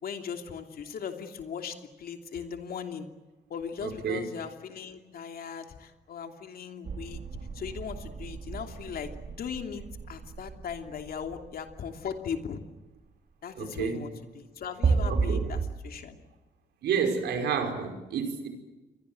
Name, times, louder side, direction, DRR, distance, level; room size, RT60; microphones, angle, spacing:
voice 1, 0.0-3.1 3.5-7.2 7.5-9.1 9.4-12.6 13.4-16.2, left 7 dB, 60° left, 2.9 m, -38 dB
voice 2, 3.8-4.2 13.6-14.1 15.1-15.4 16.8-18.5, right 6 dB, 80° right, 5.2 m, -30 dB
sound 1, 6.8-12.3 14.8-15.7, right 5 dB, 50° right, 3.9 m, -32 dB
28.5 x 23.0 x 7.8 m
cardioid pair, 95°, 17 cm